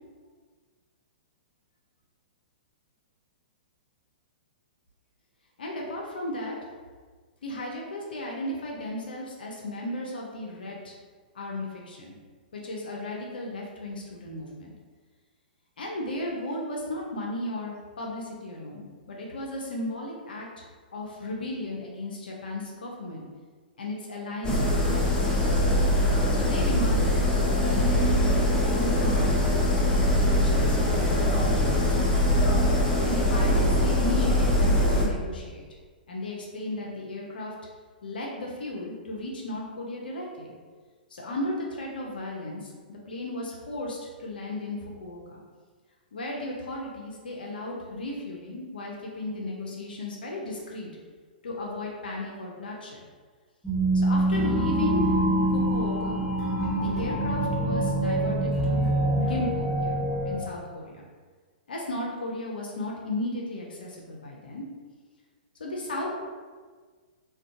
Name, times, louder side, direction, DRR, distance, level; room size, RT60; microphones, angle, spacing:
voice 1, 5.6-6.6 7.4-10.9 11.3-12.2 12.5-14.7 15.8-20.5 20.9-23.2 23.8-25.4 26.3-29.8 30.3-32.2 33.0-35.6 36.1-37.5 38.0-40.5 41.1-45.4 46.1-50.9 51.4-53.0 53.9-55.1 55.5-56.3 56.8-58.9 59.2-61.0 61.7-64.6 65.6-66.1, left 1 dB, 75° left, -2 dB, 0.5 m, -35 dB
sound 1, 24.4-35.1, left 1 dB, 15° left, 0.5 m, -22 dB
sound 2, 53.6-60.4, right 1 dB, ahead, 0.9 m, -25 dB
2.4 x 2.2 x 2.5 m, 1.5 s
figure-of-eight pair, 115°, 5 cm